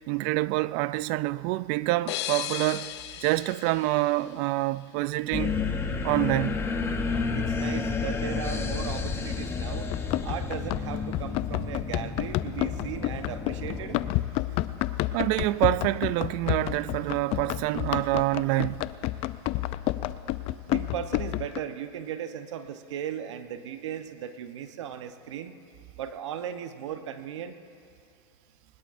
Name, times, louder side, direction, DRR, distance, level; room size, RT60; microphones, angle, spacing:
voice 1, 0.1-2.9 3.2-5.6 6.0-6.6 15.1-18.8, right 18 dB, 50° right, 0.4 m, -26 dB
sound 1, 2.1-4.8, left 12 dB, 70° left, 0.9 m, -36 dB
sound 2, 5.3-14.1, left 5 dB, 15° left, 0.9 m, -31 dB
voice 2, 7.3-9.9 10.2-14.0 20.7-25.6 26.0-27.6, right 9 dB, 80° right, 0.9 m, -37 dB
Run, 9.9-21.6, left 16 dB, 40° left, 0.5 m, -30 dB
20.5 x 20.0 x 2.6 m
supercardioid pair, 125°, 15 cm